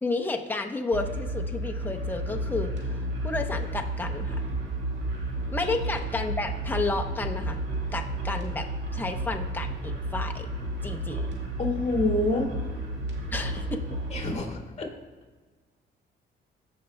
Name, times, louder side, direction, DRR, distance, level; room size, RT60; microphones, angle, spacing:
voice 1, 0.0-2.7 3.2-4.3 5.5-7.6 7.9-8.7 8.9-10.5 10.8-11.3 13.3-13.8, left 3 dB, 10° left, 3 dB, 0.7 m, -31 dB
sound 1, 0.9-14.4, right 1 dB, 60° right, 1.8 m, -32 dB
voice 2, 11.6-12.5 14.1-14.9, left 2 dB, 35° left, 1 dB, 1.8 m, -27 dB
16.0 x 5.5 x 2.2 m, 1.3 s
cardioid pair, 90°, 20 cm